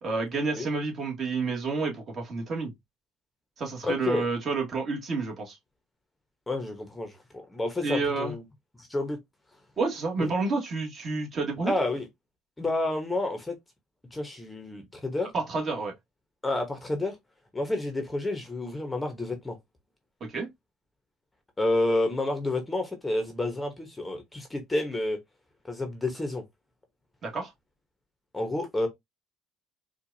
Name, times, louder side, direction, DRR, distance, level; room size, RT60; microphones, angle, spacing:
voice 1, 0.0-2.7 3.6-5.6 7.8-8.3 9.8-11.7 15.3-15.9 20.3-20.5 27.2-27.5, right 3 dB, 40° right, 1.6 m, -29 dB
voice 2, 3.8-4.2 6.5-8.4 8.8-9.2 10.2-10.3 11.6-12.1 12.6-13.5 14.1-15.3 16.4-17.1 17.5-19.6 21.6-25.2 25.7-26.4 28.3-28.9, left 2 dB, 10° left, 0.9 m, -29 dB
4.4 x 2.4 x 2.7 m
cardioid pair, 110°, 0 cm